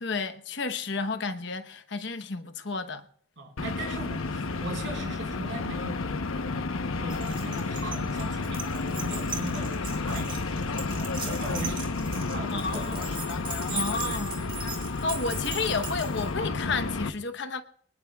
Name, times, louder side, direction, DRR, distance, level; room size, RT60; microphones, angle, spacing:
voice 1, 0.0-3.1 12.5-13.0 13.7-14.4 15.0-17.6, left 4 dB, 55° left, 1.0 m, -31 dB
voice 2, 3.4-6.0 7.0-12.0 12.3-13.1 13.7-14.2, right 2 dB, 60° right, 4.5 m, -39 dB
sound 1, 3.6-17.1, left 3 dB, 80° left, 0.9 m, -31 dB
Keys jangling, 7.1-16.3, right 4 dB, 25° right, 2.6 m, -39 dB
23.5 x 19.0 x 2.3 m
head